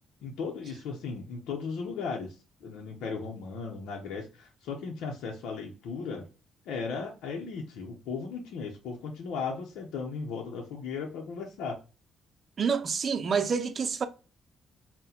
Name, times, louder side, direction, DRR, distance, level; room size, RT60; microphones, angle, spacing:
voice 1, 0.2-2.4 2.6-6.3 6.7-11.8, left 5 dB, 85° left, 0.7 m, -36 dB
voice 2, 12.6-14.0, right 6 dB, 50° right, 0.5 m, -28 dB
4.2 x 2.2 x 3.9 m
cardioid pair, 90°, 0 cm